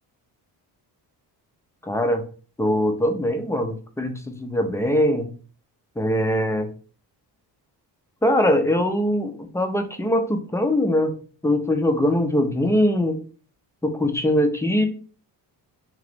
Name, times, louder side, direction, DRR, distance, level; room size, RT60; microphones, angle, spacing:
voice 1, 1.8-2.2 2.6-5.3 6.0-6.7 8.2-11.1 11.4-13.2 13.8-14.9, left 1 dB, 5° left, 5 dB, 0.4 m, -22 dB
2.9 x 2.4 x 3.3 m, 0.40 s
cardioid pair, 100°, 43 cm